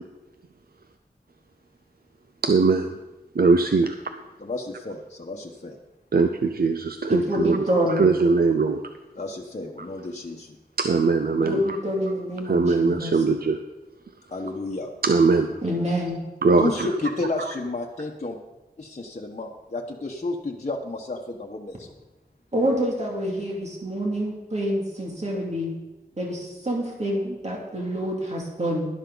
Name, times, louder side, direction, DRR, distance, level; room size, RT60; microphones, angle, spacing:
voice 1, 2.4-3.0 3.3-4.0 6.1-8.8 10.8-11.8 12.4-13.6 15.0-15.6 16.4-16.9 17.4-17.5, right 4 dB, 65° right, 7 dB, 0.6 m, -21 dB
voice 2, 4.4-5.8 9.2-10.6 14.3-14.9 16.6-18.4 18.8-21.9, left 2 dB, 45° left, 0 dB, 1.1 m, -31 dB
voice 3, 7.1-8.0 11.4-13.1 15.6-16.2 22.5-25.8 26.2-28.9, equal, 40° right, -2 dB, 2.5 m, -27 dB
12.0 x 11.5 x 4.0 m, 1.1 s
wide cardioid pair, 65°, 17 cm